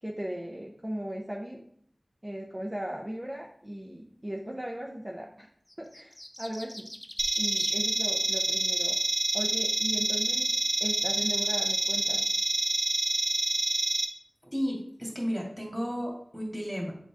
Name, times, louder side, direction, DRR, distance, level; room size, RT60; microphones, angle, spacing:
voice 1, 0.0-1.6 2.2-5.5 5.8-6.9 7.4-9.0 9.3-10.5 10.8-12.3, equal, 25° right, -1 dB, 0.9 m, -37 dB
chaffinch black forest, 5.7-7.8, left 1 dB, 15° left, 0.8 m, -43 dB
sound 1, 7.2-14.0, right 2 dB, 60° right, 0.8 m, -27 dB
voice 2, 14.5-16.9, equal, 5° right, -2 dB, 2.3 m, -33 dB
7.5 x 4.0 x 3.5 m, 0.63 s
wide cardioid pair, 40°, 0 cm